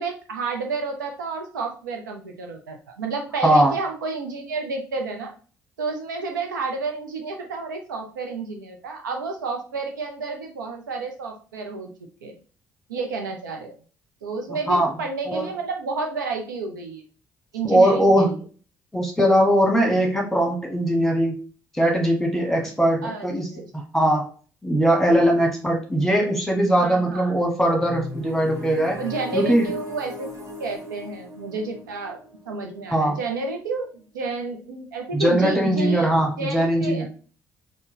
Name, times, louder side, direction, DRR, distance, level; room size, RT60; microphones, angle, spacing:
voice 1, 0.0-5.3 5.8-11.9 12.2-12.3 12.9-13.7 14.2-17.0 17.5-18.4 23.0-23.7 25.3-25.4 26.8-27.3 28.9-30.3 30.6-32.2 32.5-36.1 36.4-37.1, right 3 dB, 80° right, 3 dB, 0.6 m, -30 dB
voice 2, 3.4-3.8 14.7-14.9 15.3-15.5 17.6-18.4 18.9-21.4 21.7-23.5 23.7-24.3 24.6-29.0 29.3-29.6 32.9-33.2 35.1-37.1, right 1 dB, 5° left, 1 dB, 1.4 m, -20 dB
sound 1, 27.8-33.6, equal, 30° right, 1.3 m, -38 dB
4.3 x 2.3 x 3.1 m, 0.38 s
figure-of-eight pair, 45°, 10 cm